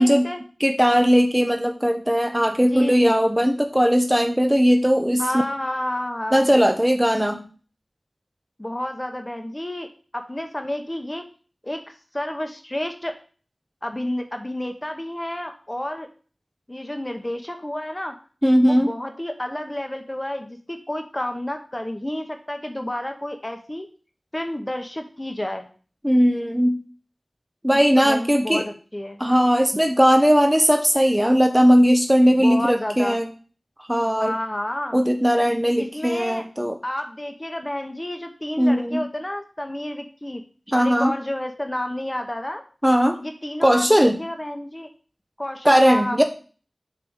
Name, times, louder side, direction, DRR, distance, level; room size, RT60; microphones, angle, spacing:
voice 1, 0.0-0.4 2.7-3.1 5.2-6.5 8.6-11.3 11.6-11.8 12.1-13.2 13.8-16.1 16.7-18.2 18.6-23.9 24.3-25.7 27.7-29.2 32.4-33.2 34.2-35.0 35.8-36.4 36.8-40.4 40.7-42.6 43.2-44.9 45.4-46.2, left 1 dB, 25° left, 5 dB, 0.9 m, -30 dB
voice 2, 0.6-5.2 6.3-7.5 18.4-18.9 26.0-26.8 27.6-28.6 29.2-33.3 33.9-34.3 34.9-36.8 38.6-39.1 40.7-41.1 42.8-43.2 43.6-44.2 45.6-46.2, equal, 10° right, 5 dB, 0.7 m, -18 dB
7.2 x 3.4 x 6.2 m, 0.39 s
wide cardioid pair, 60°, 0 cm